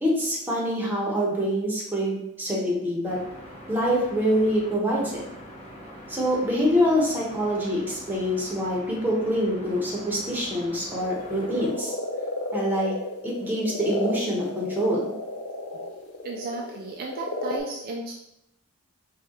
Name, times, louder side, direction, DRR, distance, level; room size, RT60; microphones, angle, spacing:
voice 1, 0.0-3.2 3.7-5.2 6.1-11.9 12.5-12.9 13.2-15.1, equal, 10° right, -4 dB, 1.1 m, -25 dB
sound 1, 3.0-11.7, equal, 25° left, 1.3 m, -43 dB
sound 2, 11.0-17.6, left 2 dB, 85° left, 0.7 m, -33 dB
voice 2, 16.2-18.1, right 3 dB, 45° right, 0 dB, 0.4 m, -35 dB
5.0 x 2.4 x 3.0 m, 0.82 s
head